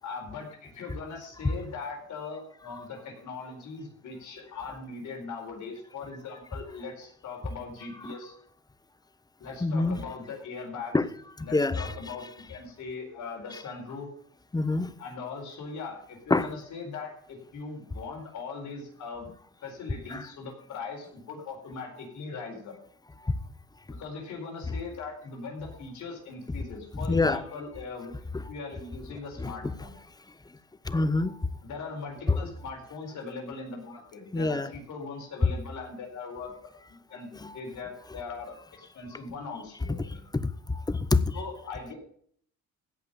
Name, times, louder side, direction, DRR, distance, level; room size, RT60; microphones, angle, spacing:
voice 1, 0.0-8.3 9.4-11.0 11.4-14.1 15.0-19.3 19.6-22.7 23.9-28.1 28.5-30.0 31.6-36.5 36.9-40.2 41.3-42.0, left 4 dB, 75° left, 4.5 m, -40 dB
voice 2, 9.6-10.0 10.9-11.1 11.5-11.9 14.5-14.9 16.3-16.5 20.1-20.3 27.1-27.4 29.4-29.5 30.9-31.3 32.3-32.4 34.3-34.7 37.4-37.5 39.9-40.0 40.3-40.4 40.9-41.2, left 3 dB, 15° left, 0.8 m, -25 dB
16.0 x 5.6 x 7.1 m
cardioid pair, 90°, 30 cm